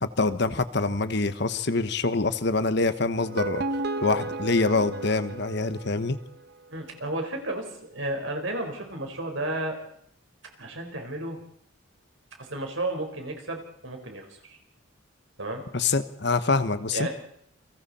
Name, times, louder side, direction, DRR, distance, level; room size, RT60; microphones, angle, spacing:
voice 1, 0.0-3.6 4.0-6.2 15.7-17.1, left 3 dB, 55° left, 12 dB, 1.2 m, -25 dB
sound 1, 3.1-6.3, right 2 dB, 50° right, 1.0 m, -33 dB
voice 2, 6.7-9.8 10.6-11.4 12.4-14.6 15.4-15.6 16.9-17.1, right 1 dB, 65° right, 3 dB, 4.7 m, -33 dB
29.0 x 23.0 x 4.3 m, 0.69 s
head